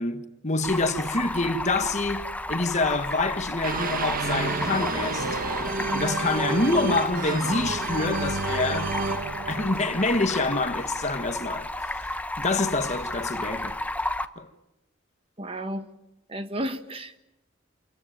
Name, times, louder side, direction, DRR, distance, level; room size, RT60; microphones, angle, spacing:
voice 1, 0.0-5.4 5.9-9.0 9.5-12.1 12.4-13.8 14.4-14.5, left 2 dB, 35° left, 1.5 m, -27 dB
Stream, 0.6-14.3, left 1 dB, 10° left, 0.9 m, -32 dB
sound 1, 3.6-10.6, right 3 dB, 45° right, 1.5 m, -30 dB
voice 2, 15.4-15.9 16.3-17.2, right 1 dB, 30° right, 1.5 m, -32 dB
28.5 x 22.5 x 9.1 m
head